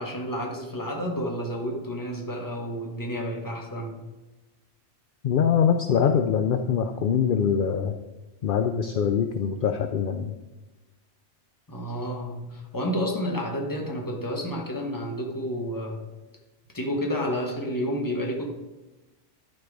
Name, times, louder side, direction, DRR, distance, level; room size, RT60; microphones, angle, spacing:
voice 1, 0.0-4.1 11.7-16.0 16.7-18.5, equal, 15° left, 1 dB, 1.2 m, -30 dB
voice 2, 5.2-8.0 8.4-10.3, left 7 dB, 60° left, 7 dB, 0.6 m, -23 dB
12.0 x 4.5 x 4.7 m, 1.1 s
omnidirectional pair, 1.2 m